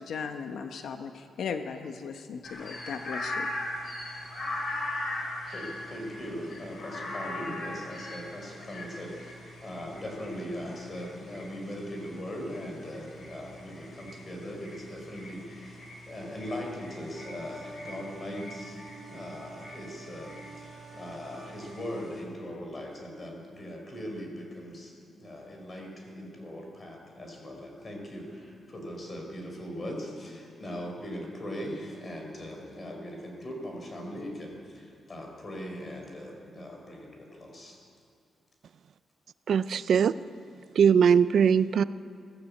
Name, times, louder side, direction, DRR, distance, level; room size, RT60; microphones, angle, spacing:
voice 1, 0.0-3.5, left 6 dB, 70° left, 1.0 m, -37 dB
sound 1, 2.4-22.2, left 1 dB, 45° left, 5.0 m, -41 dB
voice 2, 5.5-37.8, equal, 30° left, 4.5 m, -40 dB
sound 2, 17.1-21.6, right 3 dB, 10° right, 4.4 m, -48 dB
voice 3, 39.5-40.1 40.8-41.8, right 7 dB, 60° right, 0.4 m, -21 dB
20.5 x 15.0 x 8.5 m
cardioid pair, 140°, 0 cm